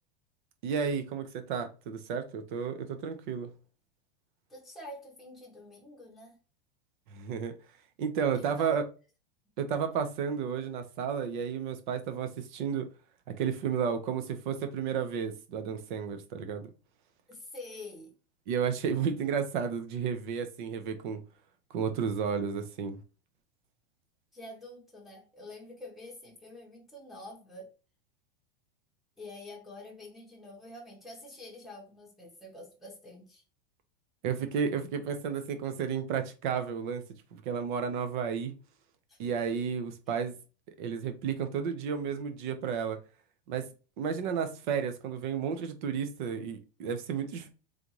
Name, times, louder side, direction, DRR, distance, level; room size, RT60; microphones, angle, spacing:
voice 1, 0.6-3.5 7.1-7.5 8.0-8.8 9.6-12.9 13.4-16.7 18.5-21.2 21.7-23.0 34.2-37.0 37.3-38.6 39.2-40.3 40.8-43.0 43.5-43.7 44.0-47.5, right 7 dB, 55° right, 0.9 m, -32 dB
voice 2, 4.5-6.4 8.3-8.8 17.3-18.1 24.3-27.7 29.2-33.4 39.1-39.2 40.1-40.2, left 1 dB, ahead, 1.0 m, -47 dB
3.8 x 3.4 x 3.0 m
supercardioid pair, 165°, 30 cm